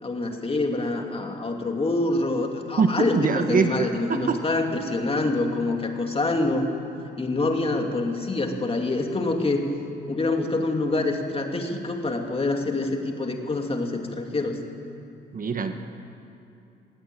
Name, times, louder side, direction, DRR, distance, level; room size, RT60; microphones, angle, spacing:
voice 1, 0.0-6.7 7.2-9.6 10.1-14.6, left 2 dB, 30° left, 3 dB, 2.5 m, -26 dB
voice 2, 2.8-4.4 15.3-15.7, right 5 dB, 45° right, 7 dB, 1.4 m, -23 dB
18.0 x 16.5 x 9.2 m, 2.8 s
cardioid pair, 90°, 20 cm